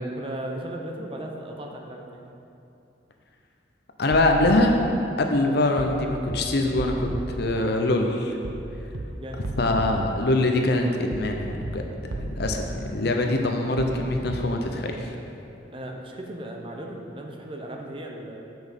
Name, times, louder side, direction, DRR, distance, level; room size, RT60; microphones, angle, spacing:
voice 1, 0.2-2.3 9.0-9.4 15.7-18.4, right 1 dB, 25° right, 1 dB, 0.7 m, -36 dB
voice 2, 4.0-4.7 5.2-7.1 7.4-8.3 9.6-11.8 12.1-15.1, left 2 dB, 55° left, 3 dB, 0.7 m, -23 dB
sound 1, 4.1-4.5 5.8-6.0 6.3-6.4 6.8-7.2 8.4-8.6 8.9-9.0 9.4-9.9 11.1-11.3 11.6-11.7 12.1-12.5 13.8-14.0 14.3-14.4, right 2 dB, 75° right, 0.6 m, -33 dB
7.1 x 6.1 x 5.3 m, 2.8 s
head